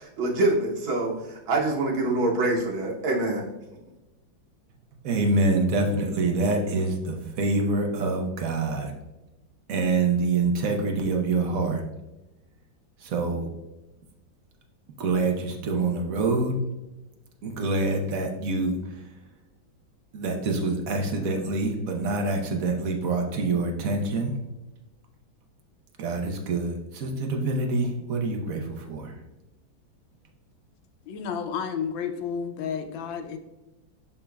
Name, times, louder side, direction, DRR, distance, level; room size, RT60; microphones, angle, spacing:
voice 1, 0.0-3.4, right 2 dB, 85° right, -2 dB, 1.9 m, -25 dB
voice 2, 5.0-8.9 9.7-11.8 13.0-13.5 15.0-16.6 17.4-19.1 20.1-24.3 26.0-29.2, right 3 dB, 55° right, 3 dB, 1.1 m, -26 dB
voice 3, 31.1-33.4, left 7 dB, 75° left, 7 dB, 1.4 m, -31 dB
11.0 x 3.7 x 2.3 m, 1.0 s
omnidirectional pair, 2.2 m